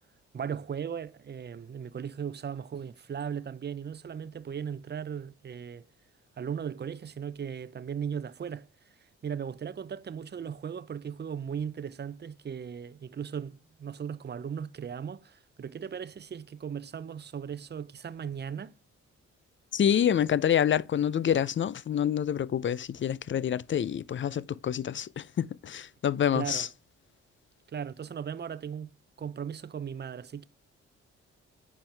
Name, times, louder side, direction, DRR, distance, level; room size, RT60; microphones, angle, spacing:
voice 1, 0.3-5.9 6.4-8.7 9.2-18.7 26.3-26.7 27.7-28.9 29.2-30.5, right 7 dB, 35° right, 0.6 m, -37 dB
voice 2, 19.7-26.7, left 9 dB, 40° left, 0.5 m, -27 dB
10.0 x 4.5 x 3.4 m
supercardioid pair, 60°, 29 cm